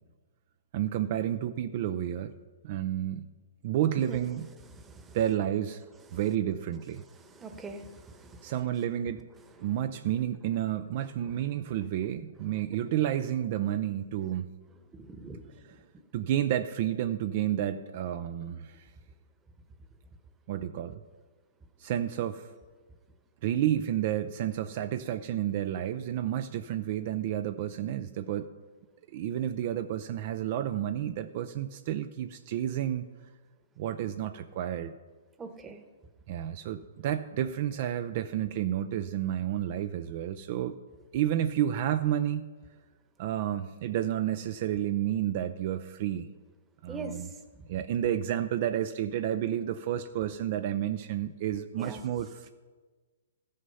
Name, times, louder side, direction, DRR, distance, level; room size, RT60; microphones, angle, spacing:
voice 1, 0.7-2.3 2.6-3.3 3.6-4.5 5.1-5.8 6.1-7.0 8.4-9.3 9.6-14.5 15.6-15.8 16.1-18.9 20.5-21.0 21.8-22.5 23.4-28.5 29.1-33.1 33.8-34.9 36.3-40.8 41.1-42.5 43.2-46.3 46.8-47.3 47.7-52.5, right 11 dB, 50° right, 10 dB, 0.5 m, -30 dB
voice 2, 4.7-5.2 7.2-8.5 15.0-15.5 35.4-35.8 46.9-47.1 51.8-52.0, right 3 dB, 15° right, 7 dB, 1.1 m, -42 dB
14.0 x 6.5 x 5.5 m, 1.4 s
hypercardioid pair, 135°, 0 cm